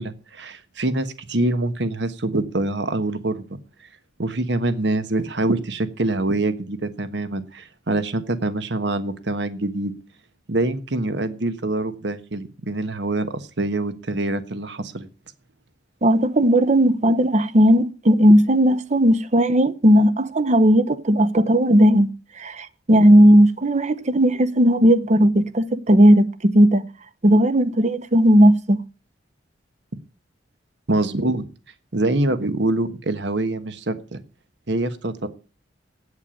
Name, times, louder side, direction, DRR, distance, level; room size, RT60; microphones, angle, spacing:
voice 1, 0.0-3.6 4.2-9.9 10.5-15.1 30.9-31.4 31.9-34.2 34.7-35.3, right 2 dB, 70° right, 1.3 m, -25 dB
voice 2, 16.0-22.1 22.4-26.9 27.2-28.8, equal, 40° right, 0.9 m, -16 dB
8.7 x 8.2 x 9.0 m
head